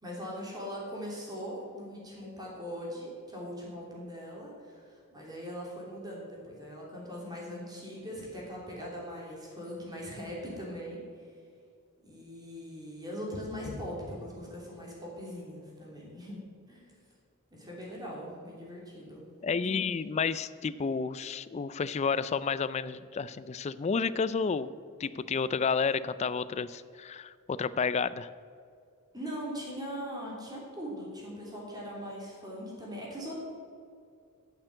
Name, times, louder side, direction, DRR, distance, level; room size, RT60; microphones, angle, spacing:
voice 1, 0.0-11.3 12.0-16.4 16.7-16.8 17.5-19.3 19.6-19.8 29.1-33.4, equal, 20° right, -4 dB, 3.0 m, -40 dB
voice 2, 19.4-24.7 25.0-28.3, left 5 dB, 30° left, 15 dB, 0.3 m, -31 dB
9.6 x 6.7 x 7.9 m, 2.3 s
head